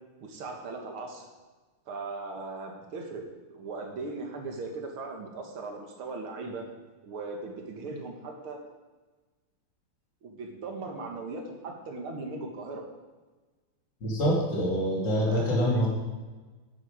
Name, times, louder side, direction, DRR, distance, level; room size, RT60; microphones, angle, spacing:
voice 1, 0.2-1.3 1.9-6.6 7.0-8.6 10.2-12.8 15.3-15.9, right 3 dB, 85° right, 2 dB, 2.4 m, -38 dB
voice 2, 14.0-15.9, equal, 60° left, -5 dB, 3.2 m, -25 dB
10.5 x 9.3 x 4.9 m, 1.3 s
omnidirectional pair, 2.3 m